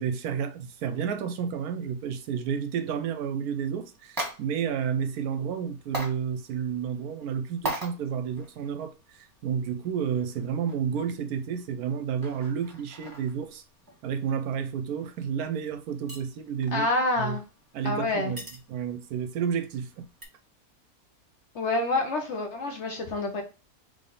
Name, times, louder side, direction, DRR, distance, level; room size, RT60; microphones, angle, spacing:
voice 1, 0.0-13.6 14.0-16.9 17.2-17.4 17.7-20.1, right 7 dB, 70° right, 1.0 m, -31 dB
sound 1, 3.5-20.2, right 1 dB, 15° right, 1.4 m, -43 dB
voice 2, 16.7-17.4 17.8-18.3 21.5-23.4, left 2 dB, 55° left, 0.9 m, -27 dB
4.1 x 3.3 x 3.7 m
omnidirectional pair, 1.7 m